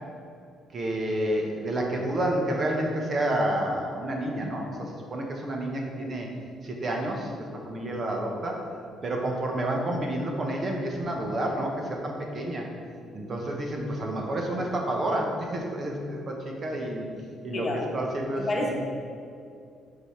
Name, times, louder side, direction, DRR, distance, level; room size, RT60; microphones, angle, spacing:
voice 1, 0.7-6.3 6.6-8.6 9.0-12.6 13.1-17.1 17.4-18.7, right 1 dB, 40° right, 0 dB, 1.1 m, -29 dB
voice 2, 18.4-18.7, left 2 dB, 35° left, 0 dB, 1.2 m, -28 dB
5.3 x 4.8 x 5.8 m, 2.4 s
cardioid pair, 105°, 0 cm